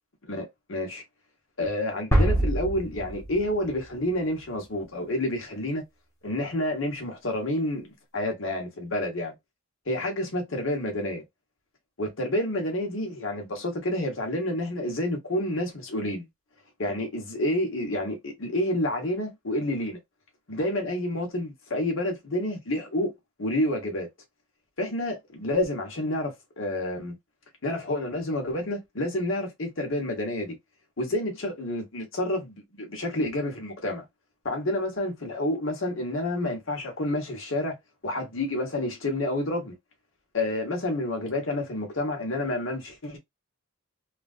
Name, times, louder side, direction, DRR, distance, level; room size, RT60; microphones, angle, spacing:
voice 1, 0.3-1.0 1.6-5.8 6.2-7.9 8.1-9.3 9.9-11.2 12.0-16.2 16.8-20.0 20.5-23.1 23.4-24.1 24.8-27.1 27.6-30.6 31.0-34.0 34.4-37.7 38.0-39.7 40.3-43.2, left 1 dB, 70° left, 1.2 m, -29 dB
sound 1, 2.1-4.0, right 1 dB, 15° left, 1.1 m, -25 dB
3.2 x 2.5 x 2.5 m
head